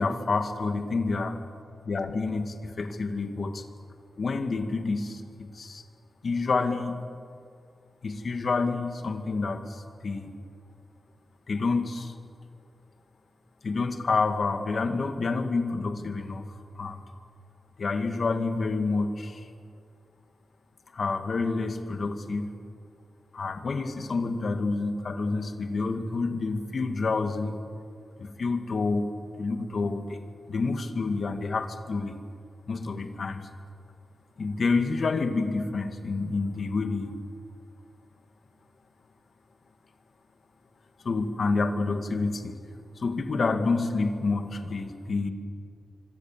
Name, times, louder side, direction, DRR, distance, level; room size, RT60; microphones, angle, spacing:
voice 1, 0.0-1.4 1.9-3.7 4.2-5.8 6.2-7.0 8.0-10.3 11.5-12.2 13.6-17.0 17.8-19.5 20.9-22.4 23.3-27.5 28.2-29.1 29.4-30.2 30.5-32.2 32.7-33.5 34.4-37.2 41.0-42.6 43.0-45.3, left 3 dB, 45° left, 7 dB, 2.0 m, -28 dB
26.5 x 25.0 x 7.5 m, 2.3 s
wide cardioid pair, 165°, 0 cm